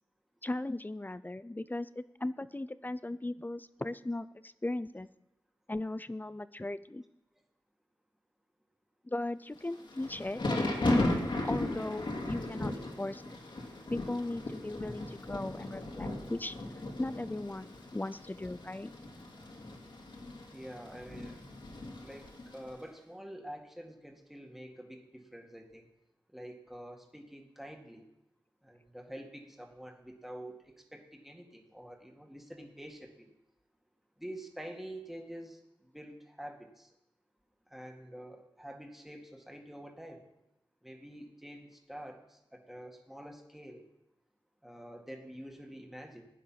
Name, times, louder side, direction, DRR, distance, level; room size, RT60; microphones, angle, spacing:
voice 1, 0.4-5.1 5.7-7.0 9.0-10.4 10.8-11.0 11.4-12.7 13.0-13.4 13.9-16.6 17.0-18.9, left 2 dB, 20° left, 15 dB, 0.5 m, -37 dB
Thunder / Rain, 9.7-22.7, left 2 dB, 65° left, 2.5 m, -36 dB
voice 2, 20.5-21.4 22.0-25.9 26.3-28.1 28.6-33.3 34.2-36.9 37.7-40.2 40.8-43.9 44.6-46.3, equal, 5° right, 2 dB, 2.0 m, -47 dB
16.0 x 10.0 x 5.9 m, 0.89 s
wide cardioid pair, 70°, 9 cm